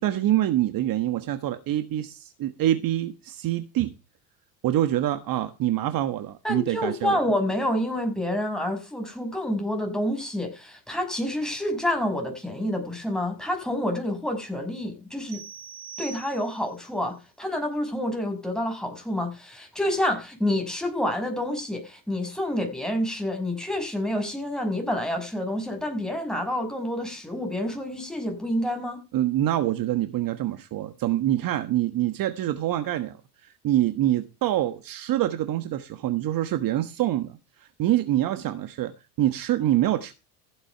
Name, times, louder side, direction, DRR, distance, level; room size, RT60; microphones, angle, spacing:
voice 1, 0.0-3.9 4.6-7.2 29.1-33.2 33.4-38.9 39.2-40.1, right 13 dB, 40° right, 1.4 m, -25 dB
voice 2, 6.4-15.4 16.0-29.0, left 1 dB, ahead, 5.8 m, -28 dB
sound 1, 15.3-16.8, right 6 dB, 60° right, 5.1 m, -42 dB
15.5 x 8.1 x 4.5 m
hypercardioid pair, 90°, 50 cm